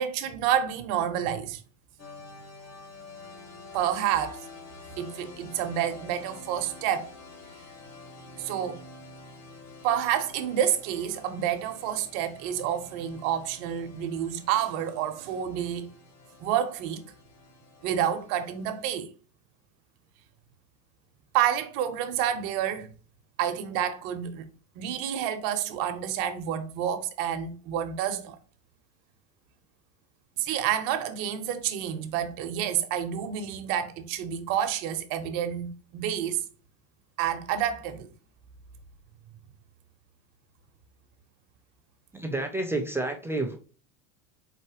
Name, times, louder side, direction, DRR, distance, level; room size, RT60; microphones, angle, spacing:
voice 1, 0.0-1.6 3.7-4.4 5.0-7.1 8.4-8.8 9.8-15.9 16.4-17.1 17.8-19.1 21.3-22.9 23.4-24.4 24.8-28.4 30.4-36.4 37.2-38.1, right 10 dB, 55° right, 1.0 m, -29 dB
sound 1, 2.0-18.9, left 3 dB, 40° left, 1.7 m, -48 dB
voice 2, 42.1-43.6, right 2 dB, 5° right, 0.4 m, -30 dB
4.4 x 4.2 x 2.8 m
supercardioid pair, 130°, 43 cm